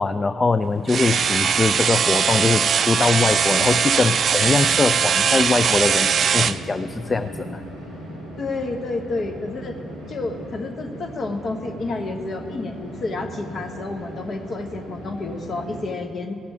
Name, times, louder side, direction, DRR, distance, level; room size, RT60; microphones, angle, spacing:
voice 1, 0.0-7.6, left 4 dB, 30° left, 11 dB, 0.4 m, -22 dB
sound 1, 0.5-15.8, right 1 dB, 85° left, 3.7 m, -38 dB
sound 2, 0.9-6.6, right 7 dB, 50° right, 0.4 m, -20 dB
voice 2, 8.4-9.8 10.1-16.5, left 3 dB, 45° left, 4 dB, 1.2 m, -30 dB
14.5 x 6.8 x 10.0 m, 2.7 s
figure-of-eight pair, 45°, 0 cm